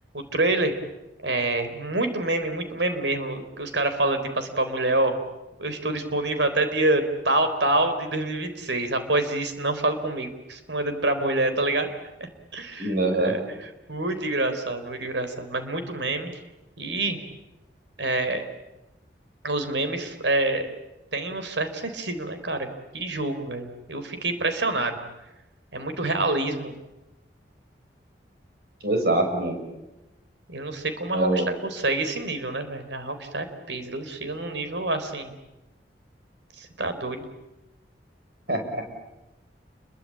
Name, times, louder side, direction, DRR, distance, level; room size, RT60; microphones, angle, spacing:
voice 1, 0.1-0.7 1.2-5.2 5.6-11.9 12.5-16.3 16.8-17.2 18.0-18.4 19.4-20.7 21.1-22.7 22.9-25.0 25.7-26.7 30.5-35.3 36.6-37.3, right 2 dB, 85° right, 8 dB, 4.0 m, -27 dB
voice 2, 12.8-13.3 28.8-29.6 31.1-31.5 38.5-38.8, right 2 dB, 60° right, 4 dB, 6.7 m, -24 dB
29.5 x 22.5 x 8.7 m, 0.99 s
head